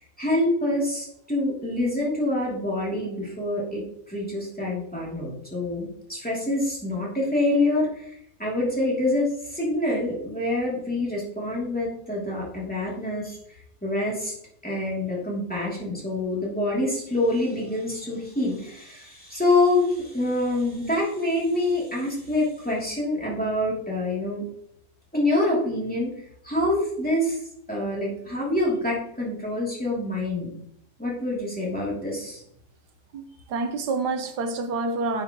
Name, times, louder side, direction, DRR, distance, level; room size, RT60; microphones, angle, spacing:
voice 1, 0.2-13.4 13.8-14.3 14.6-24.4 25.1-26.1 26.4-27.4 27.7-30.5 31.0-32.4, left 1 dB, 5° left, 2.8 m, -26 dB
voice 2, 33.1-35.2, right 3 dB, 90° right, 1.5 m, -28 dB
9.1 x 6.7 x 3.0 m
omnidirectional pair, 1.7 m